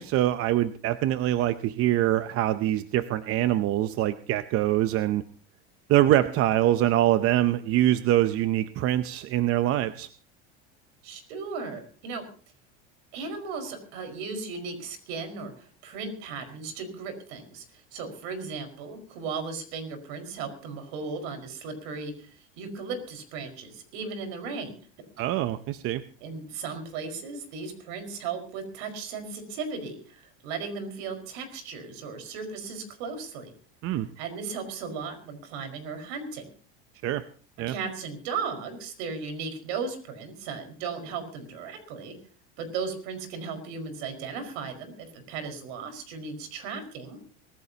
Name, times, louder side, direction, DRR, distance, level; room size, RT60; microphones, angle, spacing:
voice 1, 0.0-5.2 5.9-10.1 25.2-26.0 33.8-34.1 37.0-37.2 37.6-37.7, right 13 dB, 45° right, 12 dB, 0.7 m, -24 dB
voice 2, 11.0-12.3 13.1-24.8 26.2-33.5 33.9-36.4 37.7-42.2 42.6-47.2, right 5 dB, 70° right, 6 dB, 5.2 m, -36 dB
24.5 x 15.5 x 2.9 m, 0.40 s
supercardioid pair, 130°, 32 cm